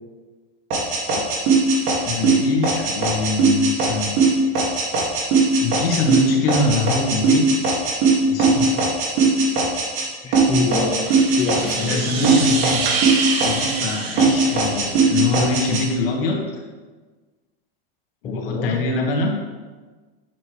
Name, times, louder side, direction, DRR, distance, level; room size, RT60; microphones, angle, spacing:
sound 1, 0.7-10.1 10.3-12.0 12.2-13.9 14.2-15.8, right 4 dB, 45° right, 2.1 m, -19 dB
voice 1, 2.0-4.1 5.6-7.7 8.3-8.8 11.7-12.8 13.4-16.6 18.2-19.3, left 3 dB, 80° left, 0 dB, 1.8 m, -24 dB
voice 2, 10.2-11.0 11.4-12.1 18.2-18.8, left 2 dB, 20° left, 1 dB, 1.1 m, -26 dB
sound 2, 10.7-15.4, right 5 dB, 80° right, 1.5 m, -27 dB
8.3 x 6.5 x 3.2 m, 1.4 s
supercardioid pair, 150°, 29 cm